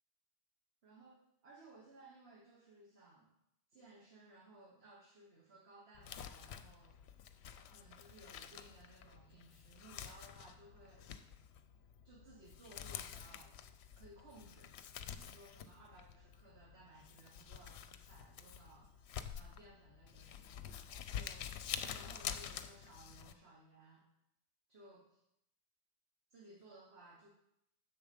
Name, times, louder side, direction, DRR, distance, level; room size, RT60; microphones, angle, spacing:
voice 1, 0.8-3.3 3.7-7.2 7.7-11.2 12.0-13.6 14.0-14.7 15.2-20.8 21.1-21.6 21.9-24.1 24.7-25.2 26.3-27.3, right 2 dB, 60° right, -2 dB, 1.5 m, -60 dB
Crumpling crinkling, 5.9-23.3, left 8 dB, 70° left, 0.8 m, -48 dB
7.0 x 6.9 x 5.1 m, 0.80 s
omnidirectional pair, 1.2 m